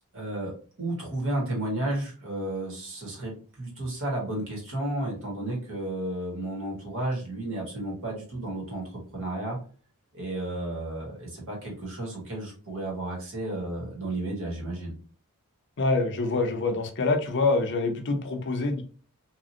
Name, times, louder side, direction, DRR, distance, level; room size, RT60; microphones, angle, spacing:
voice 1, 0.1-3.3 3.6-9.6 10.1-14.9, right 1 dB, 60° right, -2 dB, 1.4 m, -32 dB
voice 2, 15.8-18.8, left 3 dB, 55° left, 5 dB, 0.6 m, -25 dB
2.9 x 2.5 x 2.7 m, 0.40 s
head